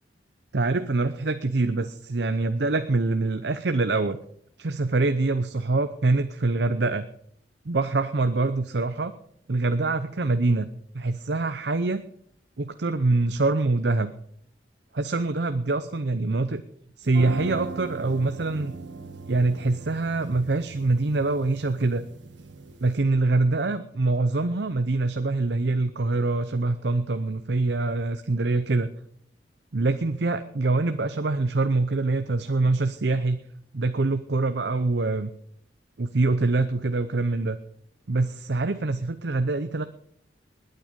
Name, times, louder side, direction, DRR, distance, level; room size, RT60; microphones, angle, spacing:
voice 1, 0.5-4.2 4.6-7.1 7.7-9.1 9.5-10.7 10.9-12.0 12.6-14.1 14.9-16.6 17.0-18.7 19.3-22.0 22.8-28.9 29.7-33.4 33.7-35.3 36.0-37.6 38.1-39.9, right 3 dB, 65° right, 9 dB, 0.7 m, -24 dB
sound 1, 17.0-23.0, right 3 dB, 85° right, 1.4 m, -39 dB
20.5 x 9.2 x 5.3 m, 0.66 s
head